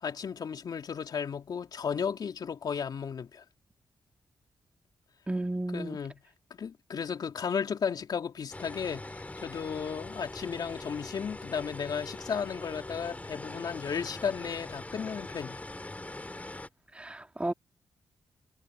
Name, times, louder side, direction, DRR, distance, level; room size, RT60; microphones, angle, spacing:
voice 1, 0.0-3.4 5.7-6.2 6.6-15.6, left 7 dB, 60° left, 2.8 m, -34 dB
voice 2, 5.3-6.0 16.9-17.5, right 2 dB, 15° right, 2.5 m, -33 dB
sound 1, 8.5-16.7, left 2 dB, 20° left, 3.7 m, -42 dB
supercardioid pair, 55°, 8 cm